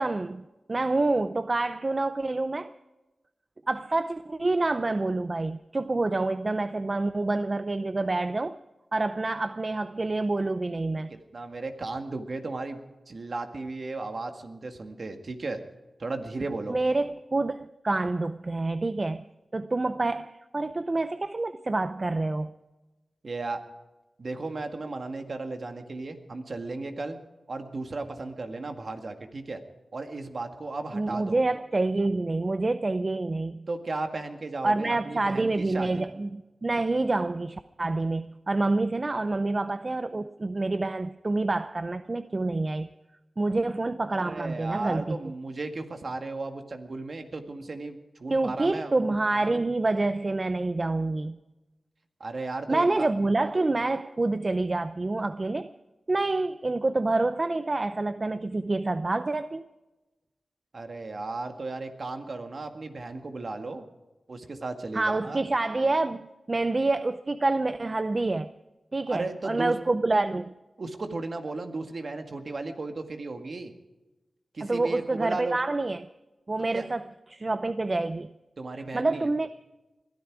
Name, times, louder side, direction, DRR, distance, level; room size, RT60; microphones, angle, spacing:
voice 1, 0.0-2.7 3.7-8.6 8.9-11.1 16.7-19.2 19.5-22.5 30.9-33.7 34.6-42.9 43.4-45.2 48.3-51.4 52.7-55.7 56.1-59.6 64.9-66.2 66.5-68.5 68.9-70.5 74.6-76.1 76.5-77.0 77.3-78.3 78.9-79.5, right 2 dB, 40° right, 0.6 m, -27 dB
voice 2, 11.1-12.8 13.1-15.6 16.0-16.8 23.2-23.6 24.2-27.2 27.5-29.6 29.9-31.4 33.7-36.0 44.2-48.9 52.2-53.1 60.7-63.8 64.3-65.4 69.1-69.7 70.8-73.7 74.5-75.6 76.7-76.9 78.6-79.3, right 3 dB, 60° right, 1.9 m, -35 dB
22.0 x 13.5 x 4.8 m
wide cardioid pair, 70°, 0 cm